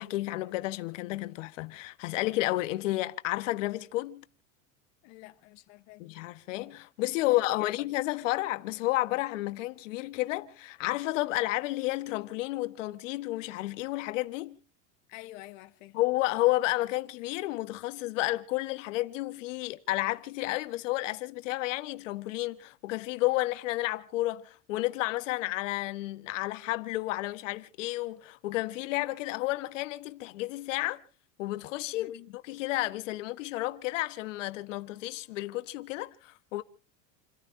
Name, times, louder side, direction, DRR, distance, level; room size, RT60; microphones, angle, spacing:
voice 1, 0.0-4.2 6.0-14.6 15.9-31.0 31.4-36.6, left 18 dB, 80° left, 1.4 m, -31 dB
voice 2, 5.0-6.1 7.2-7.7 15.1-16.0 31.9-32.3, left 18 dB, 50° left, 1.2 m, -49 dB
29.0 x 14.0 x 2.7 m
supercardioid pair, 165°, 37 cm